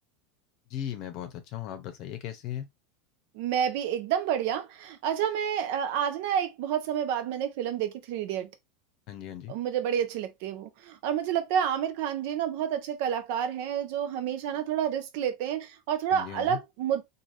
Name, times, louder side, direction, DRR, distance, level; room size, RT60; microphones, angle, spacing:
voice 1, 0.7-2.7 9.1-9.6 16.1-16.6, left 11 dB, 55° left, 0.7 m, -37 dB
voice 2, 3.3-8.5 9.5-17.0, right 9 dB, 65° right, 0.7 m, -29 dB
3.3 x 2.5 x 2.5 m
supercardioid pair, 120°, 0 cm